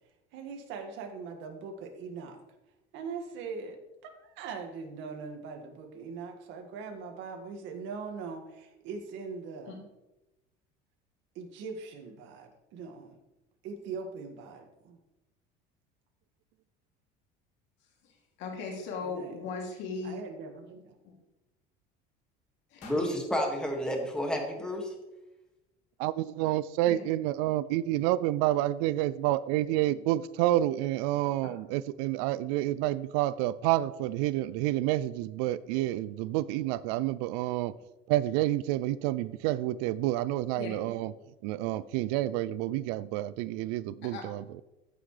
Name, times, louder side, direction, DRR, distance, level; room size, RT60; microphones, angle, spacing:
voice 1, 0.3-2.4 2.9-3.8 4.0-9.9 11.4-13.2 13.6-15.0 19.0-19.3 20.0-21.0, right 5 dB, 65° right, 2.0 m, -41 dB
voice 2, 18.0-20.2 21.0-21.2 22.7-23.1 26.9-27.0 40.6-40.7 44.1-44.2, left 4 dB, 70° left, 2.8 m, -38 dB
sound 1, 22.8-24.9, left 3 dB, 85° left, 2.3 m, -56 dB
voice 3, 22.8-25.0, equal, 5° left, 2.0 m, -31 dB
voice 4, 26.0-37.7 38.1-41.1 41.4-44.6, right 15 dB, 85° right, 0.4 m, -29 dB
14.0 x 6.0 x 3.3 m
cardioid pair, 125°, 20 cm